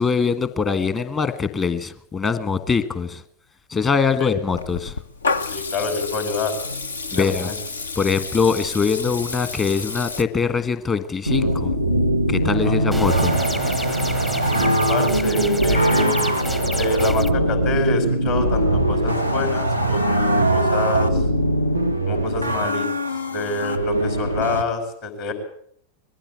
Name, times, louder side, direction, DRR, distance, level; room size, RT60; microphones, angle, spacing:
voice 1, 0.0-3.2 3.7-5.0 7.1-7.5 8.0-11.7 12.3-13.3, left 5 dB, 25° left, 12 dB, 1.5 m, -22 dB
Water tap faucet / Liquid, 4.5-10.2, left 4 dB, 75° left, 0.8 m, -30 dB
voice 2, 5.5-6.6 7.1-7.6 12.6-12.9 14.6-16.2 16.7-21.3 22.1-22.9 23.3-25.3, left 2 dB, 50° left, 5 dB, 4.9 m, -26 dB
sound 1, 11.3-24.6, right 1 dB, 90° left, 1.1 m, -21 dB
sound 2, 12.9-17.3, equal, 5° left, 0.8 m, -30 dB
21.0 x 15.0 x 8.2 m, 0.67 s
figure-of-eight pair, 90°, 0 cm